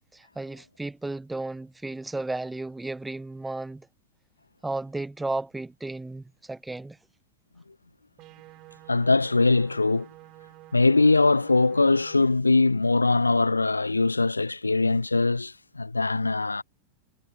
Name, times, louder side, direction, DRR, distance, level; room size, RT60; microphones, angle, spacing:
voice 1, 0.1-3.9 4.6-7.0, right 2 dB, 5° right, 1.4 m, -34 dB
sound 1, 8.2-12.1, right 19 dB, 40° right, 3.8 m, -50 dB
voice 2, 8.9-10.1 10.7-16.6, left 3 dB, 80° left, 0.7 m, -22 dB
figure-of-eight pair, 90°, 0 cm